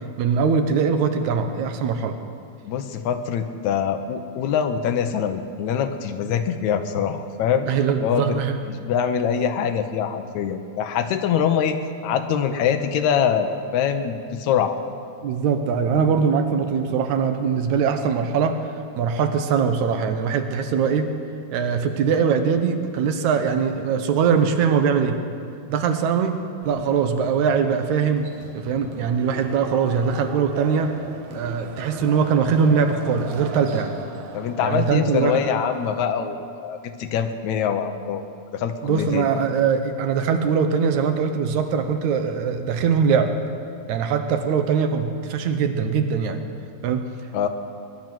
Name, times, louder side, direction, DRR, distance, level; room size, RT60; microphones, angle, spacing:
voice 1, 0.2-2.2 7.7-8.6 15.2-18.7 19.0-21.1 21.5-25.2 25.7-26.4 26.7-28.3 28.5-31.0 31.3-34.0 34.6-35.4 38.8-43.4 43.9-46.4 46.8-47.1, right 6 dB, 80° right, 7 dB, 2.3 m, -22 dB
voice 2, 2.6-7.7 8.0-8.4 8.6-11.8 12.0-14.8 34.3-38.2 38.5-39.3 47.3-47.5, left 8 dB, 80° left, 8 dB, 2.2 m, -24 dB
sound 1, 26.6-36.2, right 4 dB, 55° right, 1.7 m, -38 dB
21.5 x 11.0 x 6.1 m, 2.4 s
omnidirectional pair, 3.3 m